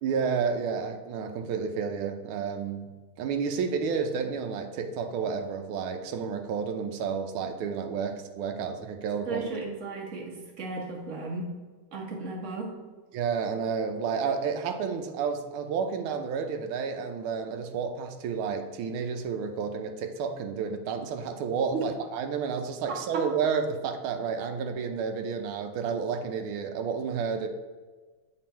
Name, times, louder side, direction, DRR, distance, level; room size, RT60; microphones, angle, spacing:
voice 1, 0.0-2.9 3.2-9.5 13.1-27.5, right 6 dB, 75° right, 5 dB, 1.5 m, -31 dB
voice 2, 9.3-11.4 11.9-12.7 21.7-21.8, right 3 dB, 40° right, -2 dB, 1.5 m, -35 dB
7.7 x 4.2 x 4.5 m, 1.3 s
omnidirectional pair, 2.4 m